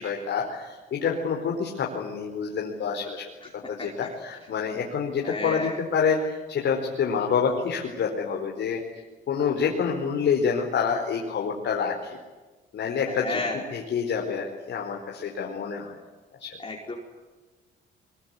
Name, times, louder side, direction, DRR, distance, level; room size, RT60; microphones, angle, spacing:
voice 1, 0.0-3.3 3.7-8.8 9.3-12.2 12.7-13.4 13.7-15.9 16.4-16.6, left 6 dB, 65° left, 0 dB, 4.7 m, -27 dB
voice 2, 5.2-5.8 13.1-13.8 16.6-17.0, left 3 dB, 25° left, -1 dB, 5.0 m, -32 dB
23.5 x 22.5 x 9.9 m, 1.3 s
cardioid pair, 90°, 20 cm